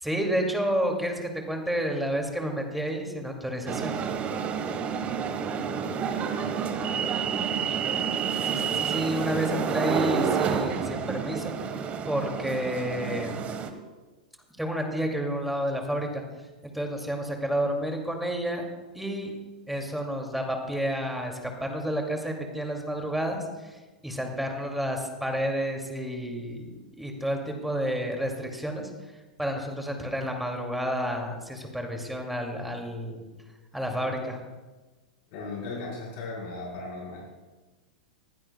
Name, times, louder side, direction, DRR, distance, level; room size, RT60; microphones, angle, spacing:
voice 1, 0.0-3.9 8.5-11.5 12.1-13.4 14.6-16.2 16.7-18.7 18.9-19.3 19.7-26.7 27.0-28.9 29.4-33.2 33.7-34.4, equal, ahead, 2 dB, 2.4 m, -30 dB
sound 1, 3.7-13.7, right 7 dB, 30° right, 1.3 m, -29 dB
voice 2, 35.3-37.2, left 3 dB, 50° left, -4 dB, 4.4 m, -36 dB
21.5 x 15.0 x 2.3 m, 1.2 s
hypercardioid pair, 100°, 4 cm